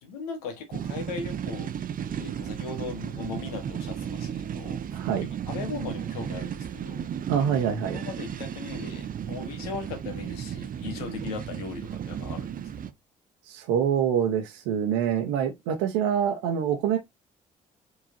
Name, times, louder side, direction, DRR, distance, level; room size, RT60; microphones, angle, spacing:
voice 1, 0.0-1.7 2.2-4.8 5.5-7.1 7.9-12.7, left 4 dB, 90° left, 1.3 m, -38 dB
sound 1, 0.7-12.9, right 9 dB, 50° right, 0.6 m, -34 dB
voice 2, 4.9-5.3 7.3-8.0 13.5-17.0, right 8 dB, 85° right, 0.8 m, -25 dB
4.7 x 3.9 x 2.6 m
hypercardioid pair, 50°, 18 cm